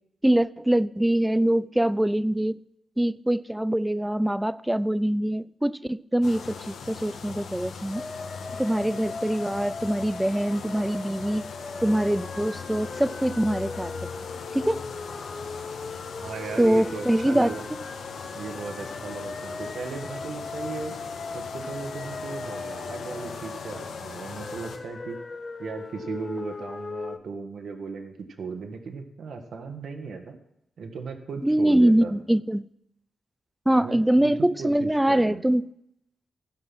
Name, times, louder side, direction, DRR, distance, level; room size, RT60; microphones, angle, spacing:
voice 1, 0.2-2.6 3.0-8.0 8.6-11.5 11.8-13.9 14.5-14.8 16.6-17.8 31.4-32.6 33.7-35.6, right 1 dB, 5° right, 0.3 m, -23 dB
sound 1, 6.2-24.8, left 5 dB, 85° left, 1.4 m, -40 dB
sound 2, 7.9-27.2, left 4 dB, 30° left, 0.6 m, -39 dB
voice 2, 16.2-17.6 18.3-20.9 21.3-25.2 25.6-30.4 30.8-32.1 33.8-35.4, right 4 dB, 65° right, 1.4 m, -36 dB
15.0 x 5.6 x 6.1 m
cardioid pair, 110°, 0 cm